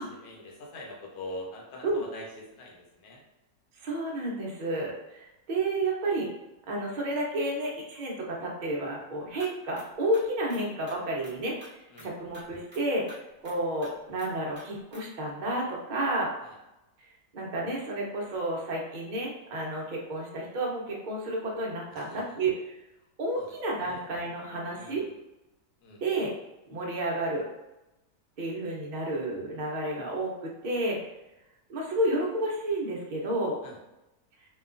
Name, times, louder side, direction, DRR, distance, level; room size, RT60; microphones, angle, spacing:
voice 1, 0.0-2.3 2.6-3.2 11.9-12.1 16.4-16.6 21.9-22.4 23.4-23.5 23.8-24.0 24.7-25.1 25.8-26.0 33.6-33.8, left 1 dB, 80° left, -1 dB, 1.2 m, -43 dB
voice 2, 3.8-6.3 6.7-13.0 13.4-16.3 17.3-22.6 23.2-25.0 26.0-26.3 26.7-27.5 28.4-31.0 31.7-33.6, right 1 dB, 60° right, -2 dB, 0.4 m, -31 dB
sound 1, 9.4-9.5 9.8-9.9 10.1-11.0 11.2-11.3 11.6-11.7 12.0-12.1 12.3-12.4 12.7-12.8 13.1-13.2 13.4-13.9 14.2-14.3 14.6-14.7 14.9-15.0, equal, 20° right, 0.8 m, -48 dB
2.9 x 2.3 x 2.4 m, 0.95 s
omnidirectional pair, 1.6 m